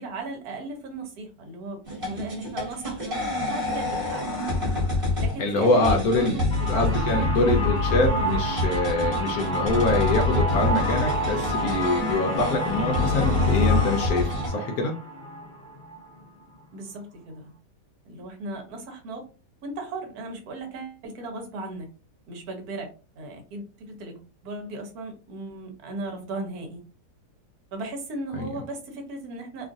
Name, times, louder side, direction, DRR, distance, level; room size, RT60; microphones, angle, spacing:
voice 1, 0.0-4.3 5.2-6.9 16.7-17.5 18.1-19.3 19.6-21.9 22.3-22.9 23.2-26.8 27.7-29.7, right 2 dB, 65° right, 4 dB, 1.2 m, -37 dB
sound 1, 1.8-14.5, left 3 dB, 35° right, 1.3 m, -27 dB
voice 2, 5.4-6.4 6.7-14.9 28.3-28.5, left 2 dB, 70° left, 3 dB, 1.0 m, -24 dB
sound 2, 6.5-16.2, equal, 50° left, 0.5 m, -29 dB
2.9 x 2.4 x 2.5 m, 0.34 s
omnidirectional pair, 1.8 m